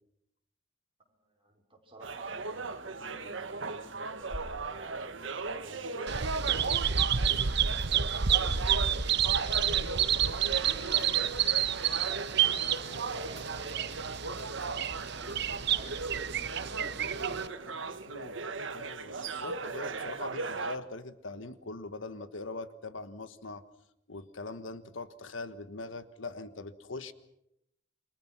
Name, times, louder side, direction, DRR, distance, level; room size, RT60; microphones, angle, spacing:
voice 1, 1.0-8.6 9.1-14.3 14.7-18.5, right 1 dB, 30° right, 1 dB, 5.1 m, -52 dB
sound 1, 2.0-20.8, right 4 dB, 75° right, 1.6 m, -37 dB
sound 2, 4.2-16.4, left 1 dB, 35° left, 5.7 m, -53 dB
Bird vocalization bird call bird song, 6.1-17.5, right 9 dB, 60° right, 1.0 m, -29 dB
voice 2, 18.1-18.4 18.7-23.6 24.1-27.1, left 3 dB, 80° left, 12 dB, 1.4 m, -42 dB
29.0 x 24.0 x 6.1 m, 0.79 s
head